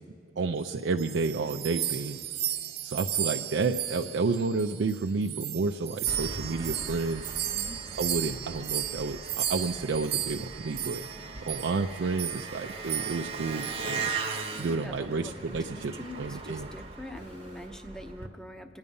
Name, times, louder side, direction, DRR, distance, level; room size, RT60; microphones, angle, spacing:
voice 1, 0.4-2.2 2.8-7.3 8.0-11.0 11.4-14.1 14.6-16.7, right 4 dB, 90° right, 3 dB, 0.5 m, -30 dB
sound 1, 0.7-5.0 5.2-11.2 11.5-11.7 12.2-12.5 12.9-13.3 13.6-13.8 14.3-14.6, right 11 dB, 60° right, 0.8 m, -34 dB
sound 2, 1.0-3.0 3.5-5.5 5.9-7.8 8.3-9.9 10.6-12.2 12.8-14.4 15.0-16.6 17.2-17.7, equal, 90° left, 2.4 m, -54 dB
Engine, 6.1-18.3, right 4 dB, 35° right, 0.9 m, -39 dB
voice 2, 7.5-7.8 14.5-18.8, equal, 5° left, 6 dB, 0.7 m, -44 dB
26.0 x 9.7 x 5.4 m, 2.2 s
head